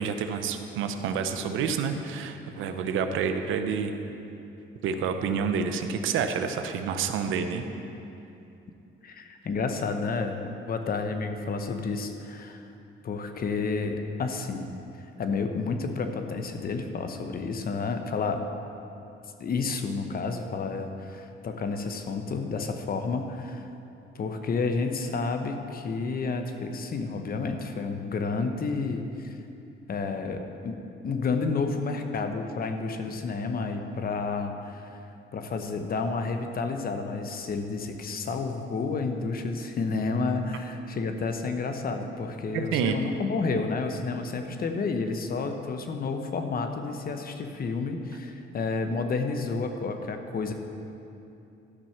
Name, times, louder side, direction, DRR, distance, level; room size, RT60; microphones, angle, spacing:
voice 1, 0.0-3.9 4.8-7.6 42.5-43.0, right 6 dB, 85° right, 7 dB, 0.7 m, -28 dB
voice 2, 9.0-12.7 13.0-14.7 15.2-18.4 19.4-23.7 24.1-29.4 29.9-30.8 31.0-35.0 35.3-50.5, left 4 dB, 50° left, 6 dB, 1.0 m, -30 dB
12.0 x 6.2 x 5.8 m, 2.8 s
cardioid pair, 90°, 20 cm